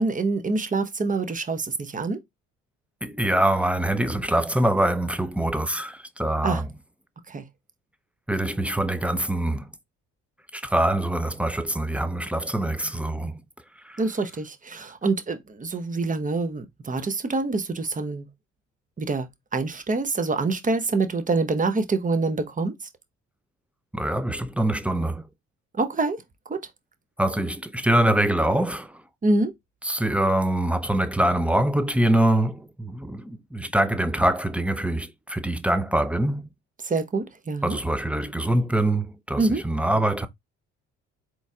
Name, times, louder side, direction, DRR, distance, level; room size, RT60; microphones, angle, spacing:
voice 1, 0.0-2.2 6.4-6.6 7.3-7.4 14.0-18.3 19.0-22.7 25.7-26.2 26.5-26.6 29.2-29.5 36.8-37.8 39.4-39.6, right 3 dB, 25° right, 1.0 m, -26 dB
voice 2, 3.0-6.7 8.3-9.7 10.5-13.4 13.8-14.0 23.9-25.3 27.2-29.0 29.8-36.4 37.6-40.3, right 1 dB, 5° right, 0.6 m, -24 dB
4.0 x 3.1 x 3.6 m
supercardioid pair, 70°, 29 cm